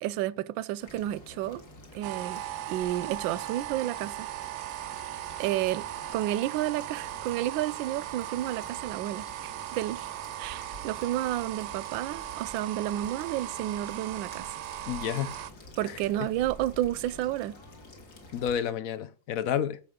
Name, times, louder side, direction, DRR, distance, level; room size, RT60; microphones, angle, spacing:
voice 1, 0.0-1.6 1.9-2.4 2.7-4.3 5.4-5.9 6.1-10.1 10.4-14.6 15.8-17.6, right 13 dB, 75° right, 1.2 m, -31 dB
sound 1, 0.8-18.6, left 1 dB, 45° left, 2.9 m, -49 dB
sound 2, 2.0-15.5, right 14 dB, 90° right, 1.5 m, -38 dB
voice 2, 14.9-15.5 15.8-16.3 18.3-19.8, left 9 dB, 75° left, 0.8 m, -31 dB
14.5 x 5.5 x 3.7 m
omnidirectional pair, 2.3 m